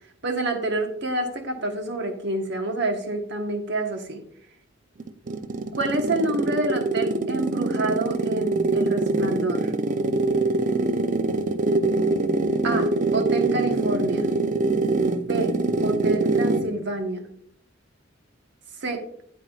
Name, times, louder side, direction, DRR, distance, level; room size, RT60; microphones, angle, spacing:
voice 1, 0.2-4.2 5.8-9.7 12.6-14.3 15.2-15.5 15.8-17.2 18.8-19.0, right 2 dB, 65° right, 4 dB, 1.2 m, -28 dB
sound 1, 5.0-16.8, right 3 dB, 40° right, 0.5 m, -24 dB
8.9 x 8.4 x 2.4 m, 0.67 s
head